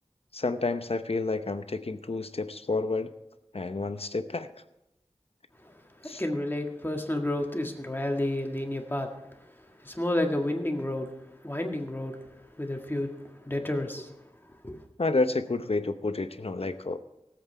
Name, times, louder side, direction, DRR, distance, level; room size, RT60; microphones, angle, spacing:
voice 1, 0.3-3.1 3.5-4.5 6.0-6.2 15.0-17.0, left 3 dB, 65° left, 10 dB, 0.8 m, -29 dB
voice 2, 6.2-9.2 9.8-11.1 11.4-12.2 12.6-13.1 13.5-14.2 14.6-14.8, left 1 dB, 20° left, 2 dB, 1.8 m, -30 dB
18.0 x 8.0 x 4.5 m, 0.89 s
wide cardioid pair, 50°, 11 cm